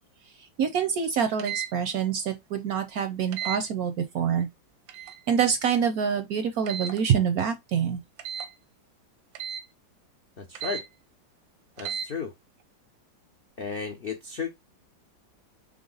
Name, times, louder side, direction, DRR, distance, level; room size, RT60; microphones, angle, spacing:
voice 1, 0.6-4.5 5.3-8.0, right 7 dB, 70° right, 0.9 m, -26 dB
sound 1, 1.4-1.7 3.3-3.6 4.9-5.2 6.7-7.0 8.2-8.5 9.4-9.6 10.6-10.8 11.8-12.1, right 9 dB, 85° right, 1.4 m, -34 dB
voice 2, 10.4-10.8 11.8-12.3 13.6-14.5, left 5 dB, 80° left, 0.5 m, -34 dB
3.9 x 3.4 x 3.8 m
omnidirectional pair, 2.1 m